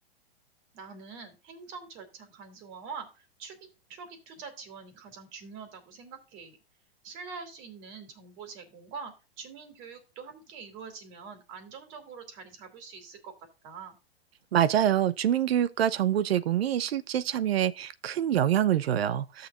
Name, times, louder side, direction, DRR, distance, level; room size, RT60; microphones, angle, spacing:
voice 1, 0.7-6.6 7.0-13.3 13.6-14.0, right 5 dB, 40° right, 3.0 m, -45 dB
voice 2, 14.5-19.5, right 10 dB, 75° right, 0.8 m, -25 dB
14.0 x 7.0 x 2.5 m
hypercardioid pair, 125°, 31 cm